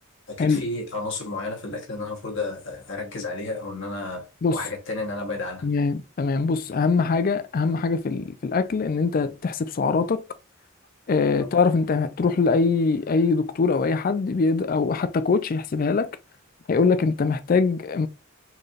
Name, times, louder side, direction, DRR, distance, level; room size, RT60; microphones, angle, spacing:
voice 1, 0.3-5.7 11.4-11.5, left 2 dB, 60° left, 1.2 m, -32 dB
voice 2, 5.6-10.2 11.1-16.1 16.7-18.1, left 4 dB, 40° left, 0.3 m, -23 dB
4.3 x 3.2 x 2.5 m
head